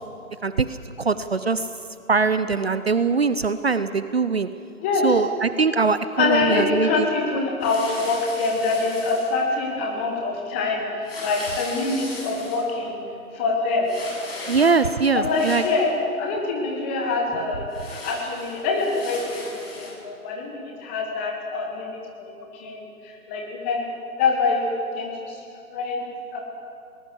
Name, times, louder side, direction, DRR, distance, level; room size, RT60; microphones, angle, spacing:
voice 1, 0.4-1.7 2.1-4.5 5.0-7.1 14.5-15.6, right 4 dB, 45° right, 12 dB, 0.7 m, -22 dB
voice 2, 6.2-13.0 13.3-13.9 15.1-15.9 16.2-23.9 24.2-25.4 25.7-26.0 26.3-26.4, left 3 dB, 10° left, 0 dB, 1.1 m, -25 dB
sound 1, 7.6-9.3 11.0-12.6 13.8-14.9 15.2-15.9 17.7-19.9, left 2 dB, 40° left, 6.5 m, -38 dB
21.0 x 19.0 x 7.5 m, 2.6 s
figure-of-eight pair, 150°, 44 cm